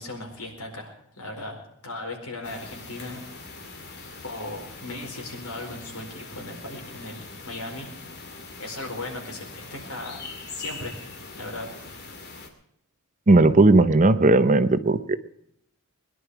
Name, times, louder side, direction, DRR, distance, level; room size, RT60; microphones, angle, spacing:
voice 1, 0.0-1.6 1.8-3.2 4.2-7.9 8.2-11.0 11.3-11.7, left 2 dB, 80° left, 2 dB, 4.6 m, -37 dB
sound 1, 2.4-12.5, left 3 dB, 50° left, 2.6 m, -42 dB
voice 2, 13.3-15.2, right 2 dB, 35° right, 12 dB, 0.7 m, -17 dB
21.5 x 11.0 x 4.7 m, 0.74 s
head